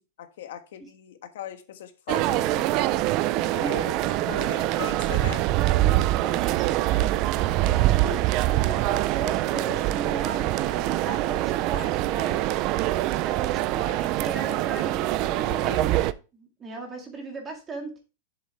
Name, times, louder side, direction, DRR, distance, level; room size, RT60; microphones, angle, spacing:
voice 1, 0.0-2.7 3.5-5.5, left 10 dB, 65° left, 1.3 m, -39 dB
sound 1, 2.1-16.1, right 16 dB, 35° right, 0.4 m, -24 dB
voice 2, 3.3-4.2 5.8-7.0 7.6-12.6 13.2-16.0 16.3-17.9, right 3 dB, 15° right, 2.2 m, -37 dB
7.5 x 7.1 x 3.3 m
supercardioid pair, 170°, 0 cm